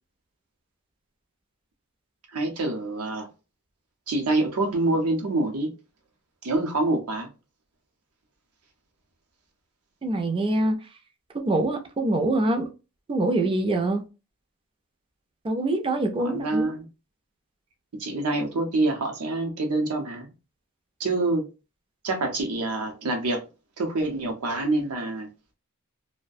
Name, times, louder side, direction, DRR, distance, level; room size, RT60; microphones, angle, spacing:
voice 1, 2.3-3.3 4.1-5.7 6.4-7.3 16.2-16.9 17.9-20.3 21.0-21.4 22.0-23.4 23.8-25.3, right 2 dB, 70° right, 0.7 m, -26 dB
voice 2, 10.0-10.8 11.4-12.7 13.1-14.0 15.4-16.7, right 2 dB, 25° right, 0.4 m, -24 dB
2.3 x 2.1 x 2.5 m
head